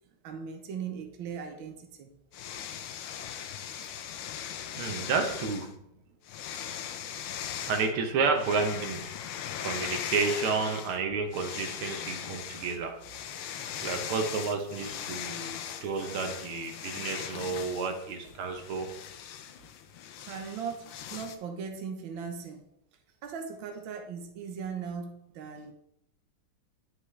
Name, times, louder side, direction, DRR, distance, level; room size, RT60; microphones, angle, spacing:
voice 1, 0.2-2.1 6.1-6.2 19.4-19.5 20.2-22.6 23.2-25.7, right 6 dB, 70° right, 4 dB, 1.7 m, -39 dB
sound 1, 2.3-5.7 6.2-7.9 8.4-11.0 11.3-21.3, left 9 dB, 85° left, 1.6 m, -39 dB
voice 2, 4.8-5.7 6.7-6.8 7.7-9.1 9.6-13.0 13.8-18.9, right 4 dB, 85° right, 4 dB, 1.9 m, -31 dB
9.5 x 5.9 x 3.3 m, 0.76 s
omnidirectional pair, 2.3 m